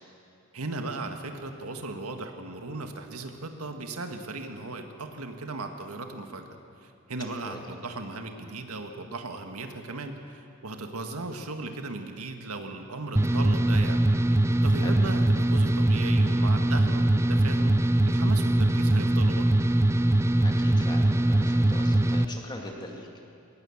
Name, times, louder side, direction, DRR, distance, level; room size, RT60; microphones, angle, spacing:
voice 1, 0.5-6.5 6.8-14.3 14.6-19.5, right 2 dB, 85° right, 5 dB, 1.8 m, -37 dB
sound 1, 13.2-22.3, right 1 dB, 10° right, 0.4 m, -22 dB
voice 2, 20.4-23.1, left 1 dB, 20° left, 1 dB, 2.4 m, -41 dB
21.5 x 19.0 x 7.3 m, 2.6 s
head